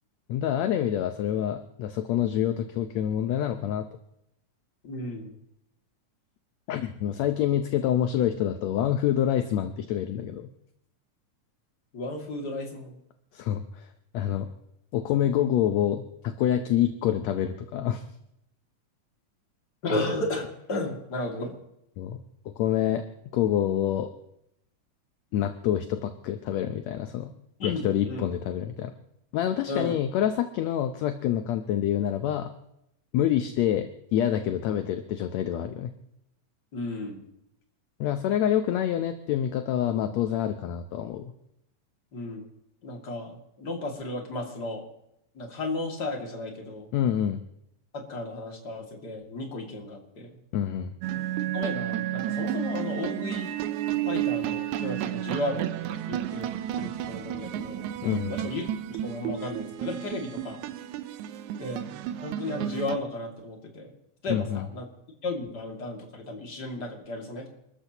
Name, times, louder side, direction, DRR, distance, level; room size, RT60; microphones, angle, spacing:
voice 1, 0.3-3.9 6.7-10.5 13.3-13.9 14.1-14.5 14.9-18.0 22.0-22.2 22.6-23.0 23.3-24.1 25.3-27.3 27.6-28.9 29.3-32.5 33.1-35.9 38.0-41.3 46.9-47.4 50.5-50.9 58.0-58.3 64.3-64.6, left 10 dB, 70° left, 8 dB, 1.8 m, -27 dB
voice 2, 4.8-5.4 11.9-13.0 19.8-21.5 27.6-28.2 29.7-29.9 36.7-37.2 42.1-42.5 42.8-44.8 45.3-46.9 47.9-50.3 51.5-53.6 54.0-56.5 56.8-57.9 58.3-58.6 58.9-60.6 61.6-61.9 62.2-63.9 64.2-64.9 65.2-67.5, left 2 dB, 35° left, 1 dB, 2.7 m, -34 dB
sound 1, 51.0-63.0, right 11 dB, 75° right, 2.0 m, -32 dB
29.0 x 13.5 x 3.0 m, 0.80 s
omnidirectional pair, 3.7 m